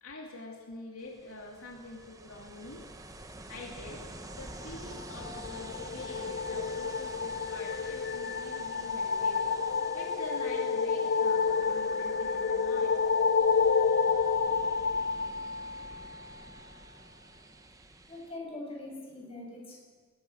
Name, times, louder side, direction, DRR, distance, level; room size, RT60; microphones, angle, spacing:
voice 1, 0.0-2.9 3.5-4.1 4.4-9.6 9.9-13.0, left 2 dB, 80° left, 0 dB, 2.6 m, -46 dB
Ocean, 1.0-18.4, right 2 dB, 15° right, 1.1 m, -49 dB
sound 1, 4.9-16.3, left 5 dB, 50° left, 0.6 m, -29 dB
sound 2, 7.7-15.4, equal, ahead, 3.6 m, -56 dB
voice 2, 18.1-19.8, left 2 dB, 25° left, -2 dB, 7.3 m, -42 dB
20.5 x 20.5 x 6.3 m, 1.5 s
head